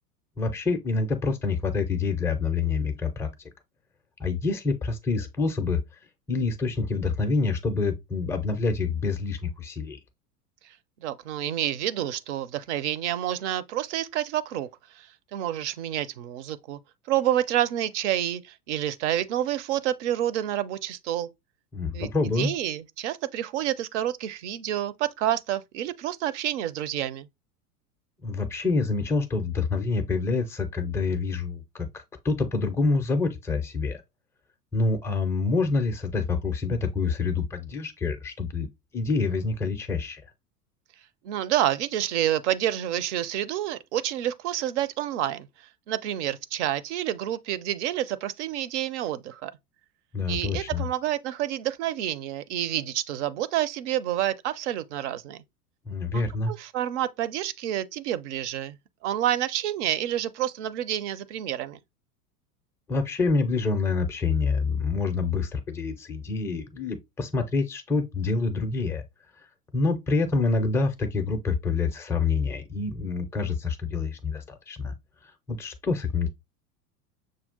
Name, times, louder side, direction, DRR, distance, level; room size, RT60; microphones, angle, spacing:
voice 1, 0.4-3.3 4.2-5.8 6.3-10.0 21.7-22.5 28.2-34.0 34.7-38.7 38.9-40.2 50.1-50.8 55.9-56.5 62.9-69.0 69.7-74.9 75.5-76.3, left 4 dB, 5° left, 0.4 m, -27 dB
voice 2, 11.0-14.7 14.9-16.8 17.1-21.3 21.9-22.1 22.4-27.3 41.2-49.5 50.3-55.4 56.1-58.8 59.0-61.8, right 12 dB, 50° right, 0.6 m, -28 dB
6.3 x 2.3 x 3.6 m
figure-of-eight pair, 85°, 47 cm